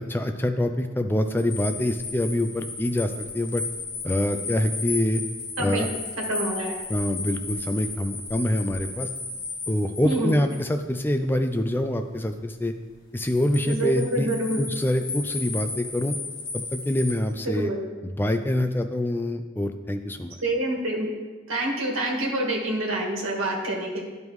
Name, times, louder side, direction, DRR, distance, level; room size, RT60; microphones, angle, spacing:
voice 1, 0.0-3.6 4.0-5.2 5.6-5.9 6.9-9.1 9.7-12.7 13.1-14.3 14.6-16.2 16.5-17.7 18.0-20.4, left 1 dB, 10° left, 7 dB, 0.3 m, -25 dB
sound 1, 1.4-10.7 13.1-17.1, left 3 dB, 60° left, 1.5 m, -35 dB
voice 2, 6.3-6.8 10.0-10.3 13.6-14.6 17.4-17.8 20.4-21.2 21.5-24.0, right 1 dB, 85° right, -2 dB, 1.6 m, -27 dB
11.0 x 5.2 x 3.1 m, 1.4 s
head